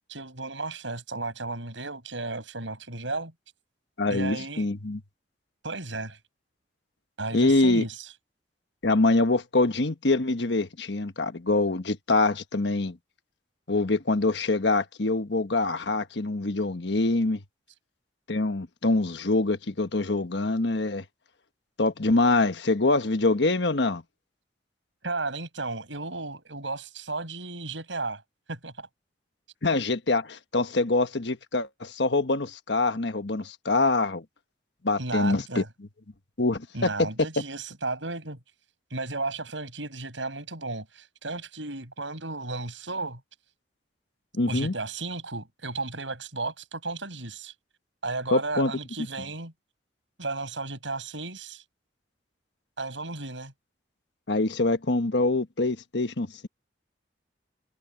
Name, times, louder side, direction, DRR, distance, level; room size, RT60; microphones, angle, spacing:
voice 1, 0.1-3.3 4.1-4.7 5.6-6.2 7.2-8.1 25.0-28.2 28.5-28.9 35.0-35.7 36.7-38.4 38.9-43.2 44.5-47.5 48.0-49.5 50.2-51.6 52.8-53.5, right 3 dB, 85° right, 7.6 m, -34 dB
voice 2, 4.0-5.0 7.3-7.9 8.8-13.0 13.7-17.4 18.3-21.0 21.8-24.0 29.6-34.2 34.8-35.6 36.4-37.1 44.3-44.7 48.3-48.7 54.3-56.5, left 2 dB, 70° left, 1.3 m, -25 dB
head